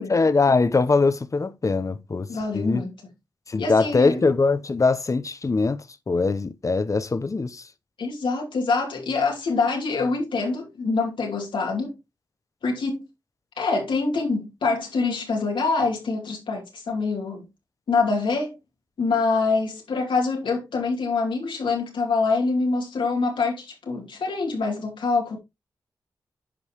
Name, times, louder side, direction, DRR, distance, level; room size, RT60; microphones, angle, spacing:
voice 1, 0.1-2.3 2.5-2.8 3.5-7.6, left 3 dB, 40° left, 0.8 m, -22 dB
voice 2, 2.3-2.9 3.6-4.2 8.0-11.9 12.6-13.0 13.6-17.4 17.9-18.6 19.0-25.4, left 4 dB, 85° left, 2.6 m, -25 dB
10.0 x 5.3 x 3.0 m
cardioid pair, 50°, 8 cm